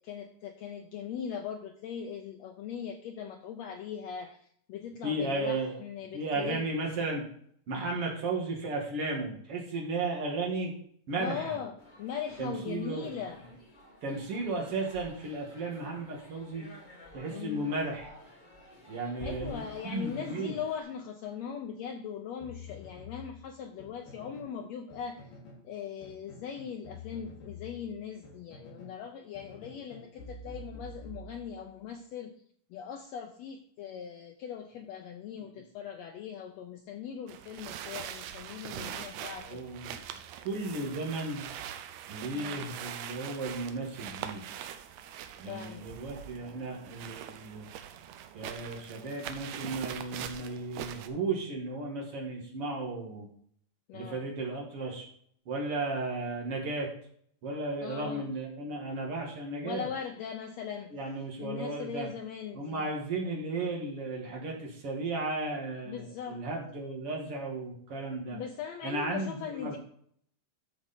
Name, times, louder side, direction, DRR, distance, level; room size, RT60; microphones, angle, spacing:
voice 1, 0.0-6.6 11.2-13.4 17.3-17.7 19.2-25.3 25.6-32.3 32.7-39.6 42.3-42.7 45.5-46.0 53.9-54.3 57.8-58.2 59.6-60.9 61.4-62.8 65.9-66.4 68.3-69.8, left 8 dB, 90° left, 4 dB, 1.5 m, -40 dB
voice 2, 5.0-5.7 6.1-7.2 7.7-10.7 11.1-11.6 12.4-13.2 14.0-16.7 17.1-18.2 18.9-20.6 38.6-38.9 39.4-40.0 40.4-41.5 42.1-44.4 45.4-47.7 48.3-53.3 53.9-55.1 55.5-56.9 57.4-59.9 60.9-62.1 62.5-68.4 68.8-69.8, right 2 dB, 50° right, -1 dB, 2.4 m, -34 dB
sound 1, 11.8-20.8, left 1 dB, 40° left, 0.6 m, -51 dB
sound 2, 22.4-24.6 24.9-25.7 26.0-29.0 29.3-31.8, left 2 dB, 70° left, 4.8 m, -48 dB
sound 3, 37.3-51.1, right 10 dB, 75° right, 2.0 m, -42 dB
13.0 x 4.9 x 4.2 m, 0.62 s
omnidirectional pair, 3.9 m